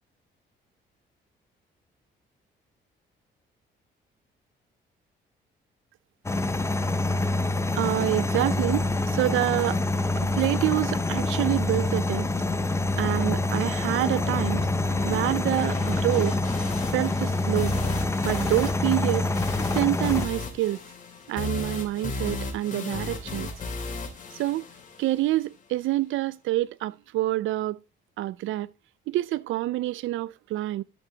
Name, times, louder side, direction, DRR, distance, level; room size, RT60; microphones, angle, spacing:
sound 1, 6.3-20.3, left 2 dB, 15° left, 0.7 m, -26 dB
voice 1, 7.8-9.8 10.1-12.3 13.0-14.7 15.0-16.4 16.9-17.8 18.2-19.3 19.7-20.8 21.3-23.5 24.3-24.7 25.0-27.8 28.2-28.7 29.1-30.8, right 16 dB, 80° right, 0.5 m, -27 dB
sound 2, 10.4-25.4, left 3 dB, 40° left, 2.5 m, -36 dB
12.5 x 6.2 x 2.8 m
cardioid pair, 90°, 20 cm